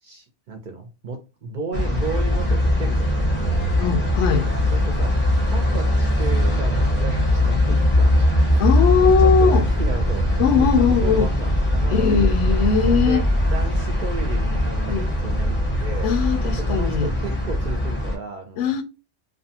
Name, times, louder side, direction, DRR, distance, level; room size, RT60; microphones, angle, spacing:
voice 1, 0.0-4.0 4.7-8.4 8.9-16.1 16.4-18.8, right 3 dB, 55° right, 0.5 m, -34 dB
sound 1, 1.7-18.2, left 1 dB, 10° left, 0.7 m, -20 dB
voice 2, 3.8-4.5 8.6-9.6 10.4-11.3 11.9-13.2 14.9-15.1 16.0-17.1 18.6-18.8, left 6 dB, 80° left, 0.9 m, -20 dB
2.5 x 2.2 x 2.7 m
omnidirectional pair, 1.2 m